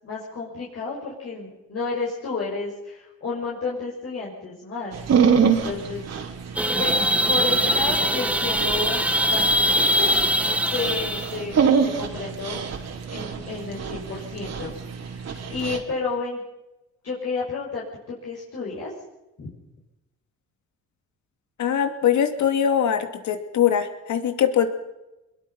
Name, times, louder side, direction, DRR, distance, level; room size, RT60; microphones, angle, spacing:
voice 1, 0.0-4.9 5.6-6.0 6.8-7.0 7.3-12.6 13.1-16.4 17.0-17.8 18.2-18.9 19.4-19.5, left 4 dB, 50° left, -5 dB, 6.3 m, -31 dB
Dog, 4.9-15.8, right 6 dB, 60° right, 3.5 m, -26 dB
sound 1, 6.6-11.3, right 1 dB, 5° right, 1.6 m, -22 dB
voice 2, 21.6-24.7, left 9 dB, 70° left, 7 dB, 2.7 m, -22 dB
22.0 x 22.0 x 5.8 m, 0.96 s
cardioid pair, 90°, 30 cm